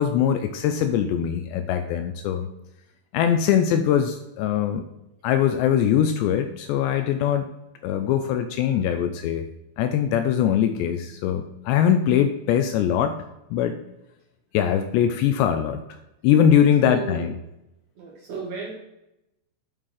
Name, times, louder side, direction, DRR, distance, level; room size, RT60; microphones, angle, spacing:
voice 1, 0.0-2.5 3.1-4.8 5.2-7.5 7.8-9.4 9.8-13.2 13.5-13.8 14.5-15.8 16.2-17.3, left 9 dB, 80° left, 7 dB, 2.6 m, -22 dB
voice 2, 16.8-17.3 17.9-18.7, right 4 dB, 85° right, -2 dB, 1.5 m, -33 dB
9.0 x 5.6 x 4.7 m, 0.88 s
omnidirectional pair, 5.4 m